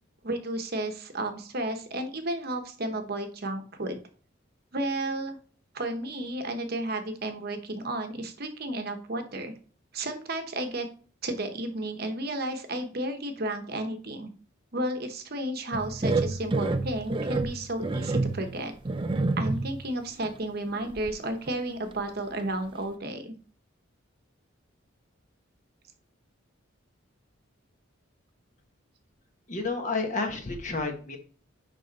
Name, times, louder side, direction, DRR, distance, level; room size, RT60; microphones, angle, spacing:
voice 1, 0.2-4.0 4.7-5.4 5.7-9.5 9.9-10.9 11.2-14.3 14.7-18.7 19.4-23.4, right 1 dB, 50° right, 7 dB, 1.0 m, -32 dB
sound 1, 15.7-19.9 20.2-20.4 20.8-21.6 21.9-22.0 22.4-22.5, right 3 dB, 25° right, 0.4 m, -29 dB
voice 2, 29.5-31.2, left 3 dB, 40° left, 4 dB, 1.3 m, -30 dB
10.5 x 3.5 x 4.0 m, 0.42 s
head